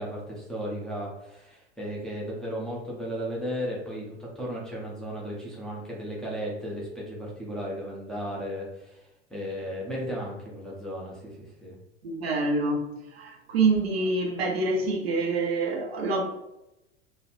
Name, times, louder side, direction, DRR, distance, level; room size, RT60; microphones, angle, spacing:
voice 1, 0.0-11.8, equal, ahead, -5 dB, 0.7 m, -35 dB
voice 2, 12.0-16.2, right 3 dB, 60° right, 2 dB, 0.7 m, -26 dB
3.1 x 2.4 x 2.5 m, 0.89 s
figure-of-eight pair, 85°, 35 cm